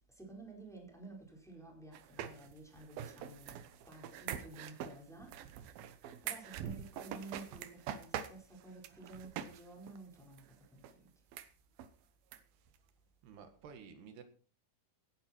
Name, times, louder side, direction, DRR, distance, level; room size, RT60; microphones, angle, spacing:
voice 1, 0.2-3.6 3.9-5.4 6.2-10.8, right 2 dB, ahead, 4.3 m, -52 dB
sound 1, 1.9-9.6 9.9-10.0 10.4-10.5 10.8-10.9 11.3-11.5 11.8-11.9 12.3-12.4 12.7-12.8, right 10 dB, 75° right, 2.8 m, -44 dB
voice 2, 13.2-14.2, right 6 dB, 90° right, 3.8 m, -52 dB
17.0 x 11.0 x 4.5 m
omnidirectional pair, 4.5 m